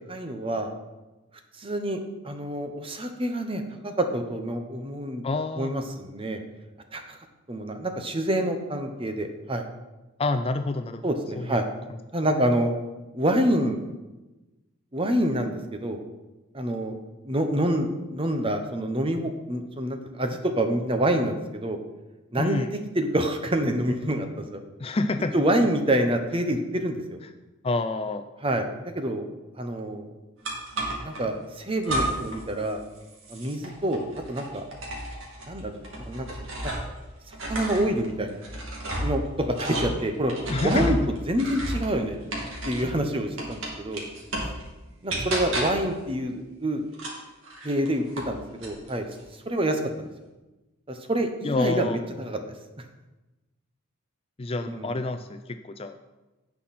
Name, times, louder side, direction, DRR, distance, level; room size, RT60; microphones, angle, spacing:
voice 1, 0.1-0.7 1.6-5.2 5.6-6.4 6.9-7.2 7.5-9.6 11.0-11.7 12.1-12.7 13.1-13.8 14.9-16.0 16.5-17.0 17.2-21.8 22.3-24.6 25.3-27.2 28.4-28.7 28.9-29.3 29.6-30.1 31.0-32.8 33.3-34.6 35.5-36.3 37.3-38.4 39.0-40.3 40.6-41.0 41.3-42.2 42.6-44.1 45.0-46.8 47.6-49.1 49.5-50.1 50.9-52.4 52.8-52.9 54.7-54.9, right 1 dB, 25° right, 6 dB, 0.9 m, -27 dB
voice 2, 5.2-5.8 10.2-11.0 11.4-11.6 22.4-22.7 24.8-25.3 27.6-28.3 40.5-41.0 51.4-52.0 54.4-56.0, left 2 dB, 25° left, 8 dB, 0.4 m, -28 dB
sound 1, 30.4-31.2 31.8-32.4 32.7-37.0 37.3-43.0 43.4-44.6 45.1-45.9 46.9-48.3 48.6-49.2, right 1 dB, 60° right, 2.5 m, -32 dB
16.5 x 5.8 x 4.3 m, 1.1 s
head